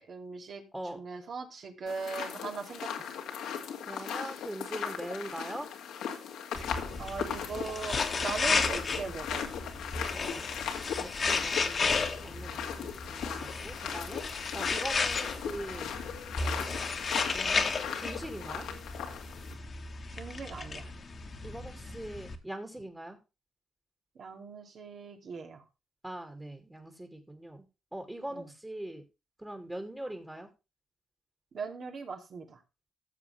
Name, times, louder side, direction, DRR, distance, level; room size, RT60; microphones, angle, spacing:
voice 1, 0.1-0.7 0.9-3.1 7.0-9.5 14.6-14.7 20.1-20.9 24.1-25.6 28.3-28.5 31.5-32.6, right 4 dB, 55° right, 3 dB, 2.8 m, -40 dB
sound 1, 1.9-19.5, left 8 dB, 85° left, 2.3 m, -38 dB
voice 2, 3.9-5.7 10.1-10.5 11.0-11.9 12.2-14.2 14.5-15.9 16.4-16.8 17.3-18.7 21.4-23.2 26.0-27.6 27.9-29.0 29.4-30.5, right 1 dB, 15° right, 4 dB, 2.4 m, -42 dB
sound 2, 6.6-22.4, left 4 dB, 40° left, 1.7 m, -34 dB
15.0 x 7.1 x 3.3 m, 0.28 s
cardioid pair, 85°, 0 cm